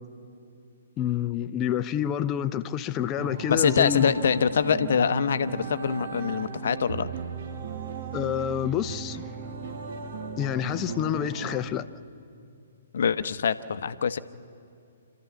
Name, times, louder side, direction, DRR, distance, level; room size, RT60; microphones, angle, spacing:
voice 1, 1.0-4.1 8.1-9.3 10.4-11.9, left 10 dB, 25° left, 0.8 m, -28 dB
sound 1, 3.2-11.6, right 6 dB, 50° right, 1.5 m, -36 dB
voice 2, 3.5-7.1 12.9-14.2, left 7 dB, 60° left, 0.9 m, -24 dB
28.5 x 13.5 x 7.1 m
figure-of-eight pair, 125°, 0 cm